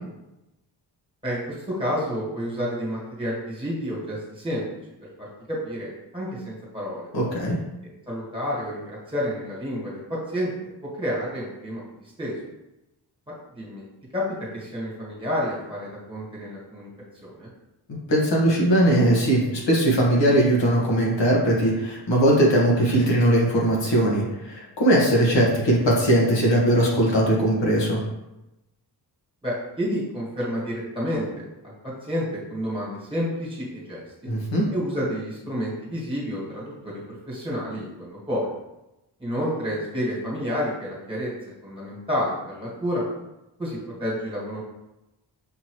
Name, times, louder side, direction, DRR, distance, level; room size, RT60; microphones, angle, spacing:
voice 1, 1.2-4.7 5.2-7.1 8.1-10.5 11.0-11.8 12.2-12.4 13.3-13.8 14.1-16.9 17.2-17.5 29.4-34.0 34.7-38.5 39.2-41.3 41.6-43.0 43.6-44.6, equal, 10° right, -6 dB, 1.5 m, -30 dB
voice 2, 7.1-7.6 18.1-28.0 34.3-34.6, right 1 dB, 85° left, -3 dB, 1.3 m, -20 dB
5.8 x 2.8 x 3.0 m, 0.95 s
wide cardioid pair, 130°, 43 cm